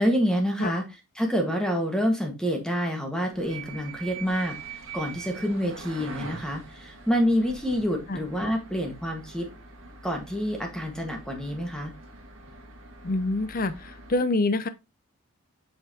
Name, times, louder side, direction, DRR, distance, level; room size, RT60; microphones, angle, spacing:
voice 1, 0.0-4.6 4.9-9.5 10.0-11.9, equal, 5° left, 1.4 m, -27 dB
sound 1, 3.3-14.2, right 4 dB, 60° right, 1.8 m, -44 dB
voice 2, 13.0-14.7, left 2 dB, 40° left, 0.6 m, -26 dB
8.1 x 5.7 x 2.8 m
head